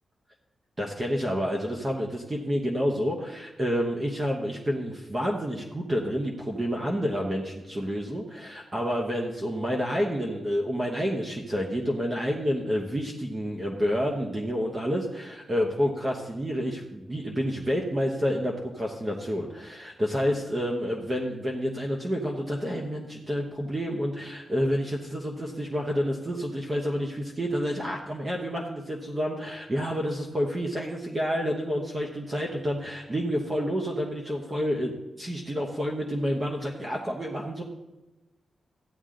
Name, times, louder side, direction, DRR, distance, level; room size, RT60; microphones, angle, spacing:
voice 1, 0.8-37.6, equal, 20° right, 0 dB, 1.0 m, -29 dB
14.5 x 9.8 x 3.8 m, 1.0 s
wide cardioid pair, 175°, 0 cm